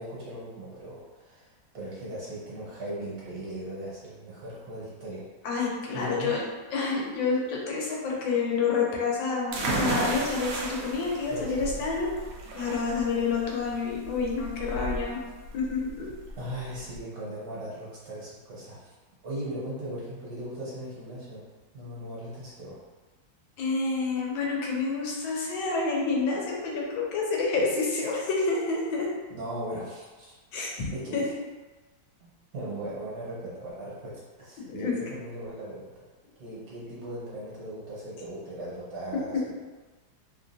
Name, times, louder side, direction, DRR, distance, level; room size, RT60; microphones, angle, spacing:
voice 1, 0.0-5.2 5.9-6.4 11.3-11.9 16.4-18.9 19.2-21.4 21.7-22.8 27.6-27.7 29.3-30.3 30.9-31.3 32.2-36.1 36.4-39.5, right 1 dB, 60° right, -7 dB, 1.3 m, -38 dB
voice 2, 5.4-6.4 6.7-12.1 12.5-15.2 15.5-16.1 23.6-29.1 30.5-31.3 34.6-35.0 39.3-39.4, left 4 dB, 85° left, -2 dB, 1.5 m, -28 dB
sound 1, 9.5-17.0, right 2 dB, 80° right, 1.2 m, -34 dB
3.4 x 2.3 x 2.6 m, 1.3 s
omnidirectional pair, 2.0 m